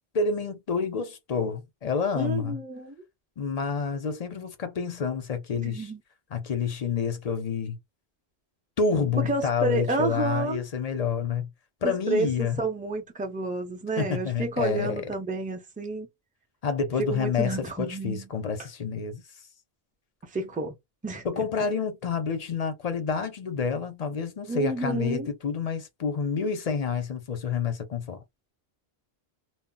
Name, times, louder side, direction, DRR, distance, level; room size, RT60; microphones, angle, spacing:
voice 1, 0.1-2.6 3.4-5.9 6.3-7.8 8.8-11.5 11.8-12.6 14.0-15.1 16.6-19.2 21.2-28.2, left 5 dB, 50° left, 0.5 m, -28 dB
voice 2, 2.1-3.0 5.5-6.0 9.2-10.6 11.8-16.1 17.1-18.3 20.2-20.7 21.0-21.3 24.5-25.3, right 2 dB, 10° right, 0.4 m, -30 dB
2.0 x 2.0 x 3.7 m
omnidirectional pair, 1.1 m